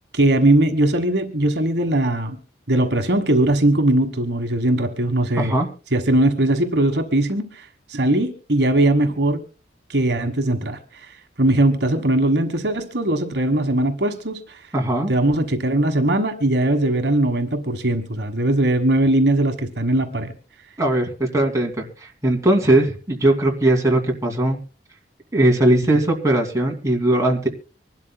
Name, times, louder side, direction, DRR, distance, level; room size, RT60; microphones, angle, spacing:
voice 1, 0.1-2.4 2.7-5.6 5.9-9.4 9.9-14.6 15.1-20.3, right 1 dB, 65° right, 5 dB, 1.4 m, -20 dB
voice 2, 5.3-5.7 14.7-15.1 20.8-24.6 25.3-27.5, right 1 dB, 15° right, 1 dB, 2.4 m, -19 dB
25.0 x 12.0 x 2.2 m, 0.35 s
head